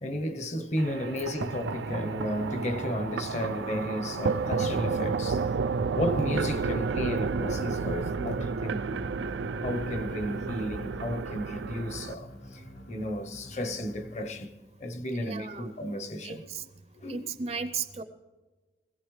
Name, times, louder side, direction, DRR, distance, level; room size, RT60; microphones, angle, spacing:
voice 1, 0.0-5.4 6.0-9.1 9.6-12.3 12.9-14.5 14.8-16.4 17.0-17.3, left 1 dB, 40° left, 0.8 m, -33 dB
sound 1, 0.8-12.1, right 4 dB, 80° right, 0.4 m, -31 dB
sound 2, 6.2-14.5, equal, 70° left, 2.1 m, -46 dB
voice 2, 15.1-15.7 16.2-16.6 17.1-18.0, right 5 dB, 35° right, 0.6 m, -35 dB
21.0 x 15.5 x 3.2 m
head